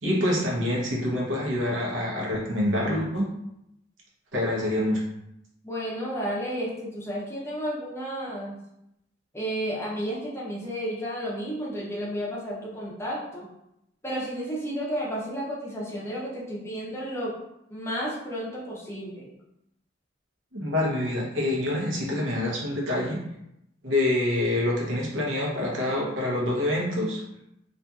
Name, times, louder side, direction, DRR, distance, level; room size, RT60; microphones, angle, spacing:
voice 1, 0.0-3.3 4.3-5.0 20.5-23.2 23.8-27.2, left 1 dB, 80° right, -3 dB, 0.8 m, -26 dB
voice 2, 5.6-8.5 9.3-13.5 14.0-17.3 17.7-19.3, equal, 15° left, -6 dB, 0.6 m, -32 dB
2.7 x 2.4 x 2.3 m, 0.83 s
head